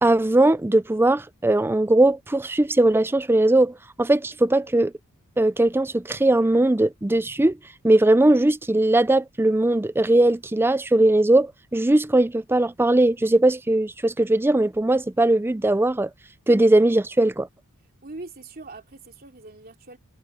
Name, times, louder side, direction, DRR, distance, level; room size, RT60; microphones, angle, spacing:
voice 1, 0.0-4.9 5.4-7.6 7.8-16.1 16.5-17.5, right 1 dB, 10° right, 0.4 m, -19 dB
voice 2, 18.0-20.0, right 2 dB, 45° right, 2.9 m, -41 dB
head